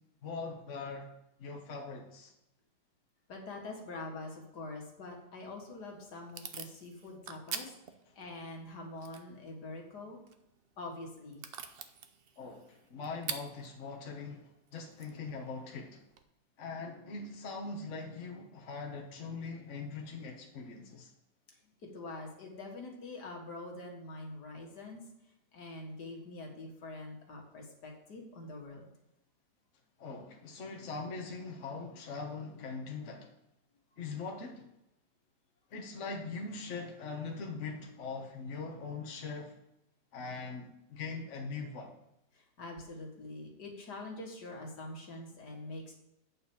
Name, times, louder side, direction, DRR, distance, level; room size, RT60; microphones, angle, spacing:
voice 1, 0.2-1.1 1.4-2.3 12.4-16.0 16.6-21.1 30.0-33.3 34.0-34.6 35.7-39.5 40.1-42.0, left 4 dB, 50° left, 1 dB, 1.2 m, -41 dB
voice 2, 3.3-7.7 8.2-10.2 10.8-11.4 21.6-25.0 25.5-28.9 42.3-45.9, left 2 dB, 70° left, 0 dB, 2.2 m, -45 dB
Packing tape duct tape / Tearing, 5.4-16.2, right 7 dB, 75° right, 0.5 m, -48 dB
8.5 x 4.6 x 6.9 m, 0.83 s
omnidirectional pair, 1.9 m